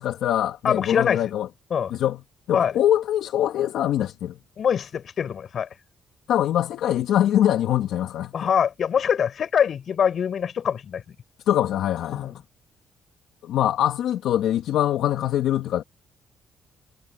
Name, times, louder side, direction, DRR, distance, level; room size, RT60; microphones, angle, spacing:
voice 1, 0.0-1.5 1.9-2.2 2.5-4.4 6.3-8.3 11.5-12.4 13.4-15.8, left 11 dB, 80° left, 2.1 m, -23 dB
voice 2, 0.6-1.2 1.7-1.9 2.5-2.7 4.6-5.7 8.3-11.0 12.1-12.4, left 8 dB, 55° left, 5.9 m, -23 dB
cardioid pair, 90°, 0 cm